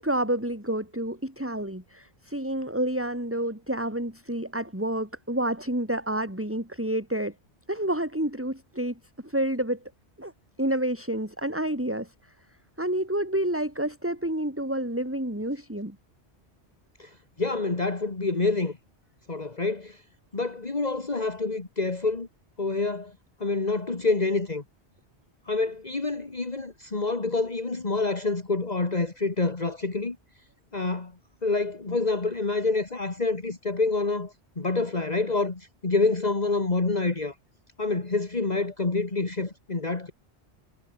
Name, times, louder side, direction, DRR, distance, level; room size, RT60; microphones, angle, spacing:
voice 1, 0.0-7.3 7.7-9.8 10.2-10.3 10.6-12.3 12.8-16.0, right 1 dB, 10° right, 3.8 m, -29 dB
voice 2, 17.0-18.8 19.3-20.0 20.3-22.3 22.6-23.1 23.4-24.6 25.5-30.2 30.7-31.1 31.4-37.3 37.8-40.1, left 3 dB, 40° left, 2.1 m, -27 dB
omnidirectional pair, 1.1 m